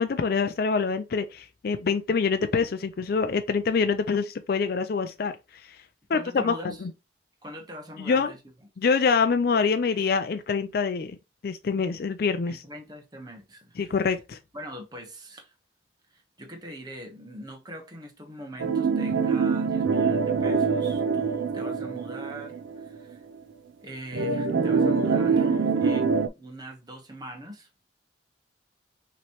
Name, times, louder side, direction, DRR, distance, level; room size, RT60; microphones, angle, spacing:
voice 1, 0.0-5.8 6.1-6.9 8.0-8.3 8.8-11.2 11.4-12.6 13.8-14.4, left 5 dB, 55° left, 0.4 m, -25 dB
voice 2, 6.1-6.8 7.4-8.4 12.5-13.8 14.5-15.5 16.1-23.2 23.8-27.7, right 1 dB, 20° right, 0.9 m, -42 dB
sound 1, 18.6-23.0 23.3-23.4 24.1-26.3, right 5 dB, 90° right, 0.5 m, -24 dB
5.8 x 3.1 x 2.9 m
head